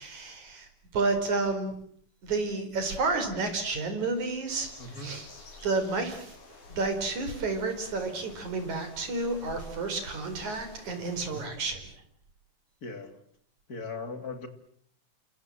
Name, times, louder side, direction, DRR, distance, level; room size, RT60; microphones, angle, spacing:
voice 1, 0.0-1.7 2.2-4.7 5.0-5.3 5.6-6.4 6.7-11.9, right 3 dB, 65° right, 6.0 m, -31 dB
sound 1, 4.5-11.5, left 3 dB, 75° left, 7.2 m, -50 dB
voice 2, 4.8-5.2 11.2-11.5 12.8-13.2 13.7-14.5, left 3 dB, 30° left, 2.8 m, -39 dB
29.0 x 25.0 x 7.7 m
omnidirectional pair, 3.6 m